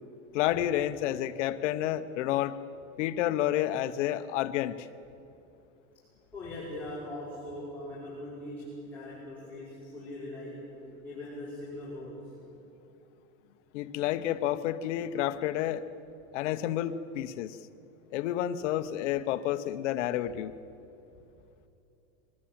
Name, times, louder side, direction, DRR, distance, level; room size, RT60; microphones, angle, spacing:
voice 1, 0.3-2.6 3.0-4.9 13.7-15.8 16.3-17.6 18.1-20.5, left 12 dB, 60° left, 12 dB, 1.0 m, -30 dB
voice 2, 6.3-10.8 11.0-12.3, left 1 dB, 5° left, -11 dB, 5.7 m, -41 dB
23.5 x 19.5 x 8.7 m, 2.7 s
supercardioid pair, 165°, 41 cm